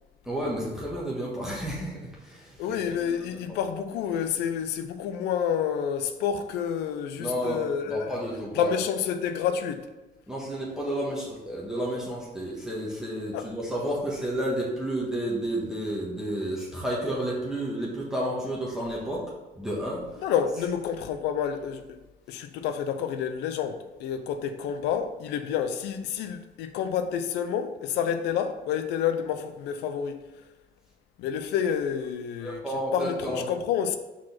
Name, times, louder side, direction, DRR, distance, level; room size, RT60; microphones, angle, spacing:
voice 1, 0.2-2.8 3.0-3.6 7.2-8.7 10.3-19.2 19.5-20.2 32.4-33.4, right 1 dB, 5° right, 1.4 m, -31 dB
voice 2, 2.6-8.1 8.5-9.9 13.3-13.5 20.2-22.0 22.3-30.2 31.2-32.6 32.9-34.0, left 8 dB, 85° left, 0.6 m, -29 dB
4.8 x 4.2 x 5.9 m
cardioid pair, 110°, 17 cm